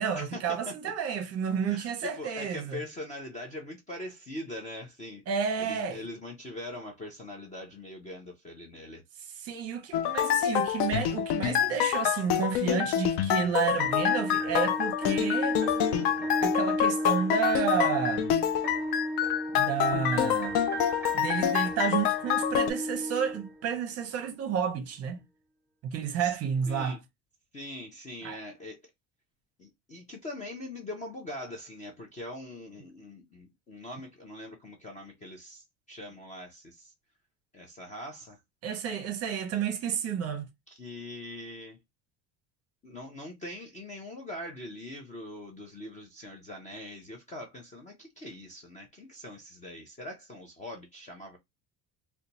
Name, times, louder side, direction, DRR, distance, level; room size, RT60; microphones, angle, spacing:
voice 1, 0.0-2.8 5.3-6.0 9.4-15.6 16.4-18.4 19.5-20.6 21.1-25.2 25.8-27.0 28.2-28.4 38.6-40.5, right 7 dB, 35° right, 0.7 m, -31 dB
voice 2, 1.7-5.2 5.6-9.0 26.2-26.4 26.7-27.0 27.5-28.8 29.6-36.9 37.5-38.4 40.7-41.8 42.8-51.4, left 1 dB, 20° left, 0.4 m, -42 dB
sound 1, 9.9-22.7, left 11 dB, 75° left, 0.5 m, -27 dB
sound 2, 13.8-23.8, equal, 5° right, 0.8 m, -34 dB
2.7 x 2.2 x 3.9 m
cardioid pair, 180°, 40 cm